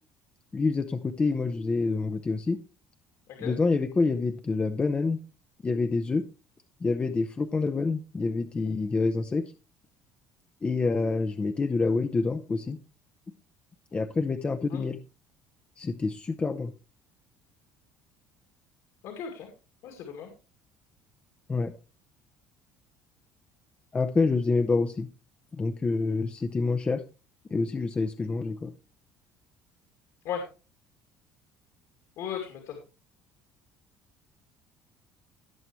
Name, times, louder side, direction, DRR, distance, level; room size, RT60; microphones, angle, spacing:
voice 1, 0.5-2.6 3.4-5.2 5.6-6.2 6.8-9.4 10.6-12.8 13.9-15.0 15.8-16.7 21.5-21.7 23.9-25.1 25.5-27.0 27.5-28.7, left 3 dB, 20° left, 9 dB, 0.6 m, -27 dB
voice 2, 19.0-19.5 19.8-20.3 30.2-30.4 32.2-32.8, left 8 dB, 70° left, 2 dB, 2.6 m, -36 dB
17.0 x 7.0 x 3.1 m, 0.32 s
cardioid pair, 145°, 6 cm